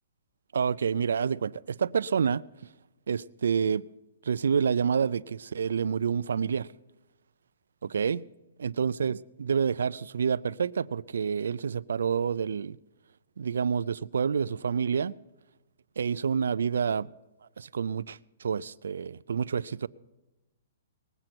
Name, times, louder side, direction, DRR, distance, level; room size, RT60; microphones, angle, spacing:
voice 1, 0.5-2.5 3.1-3.8 4.2-6.7 7.8-8.3 8.6-12.8 13.4-15.1 16.0-17.1 17.6-19.9, right 6 dB, 90° right, 0.4 m, -28 dB
20.0 x 7.8 x 6.0 m
hypercardioid pair, 170°, 0 cm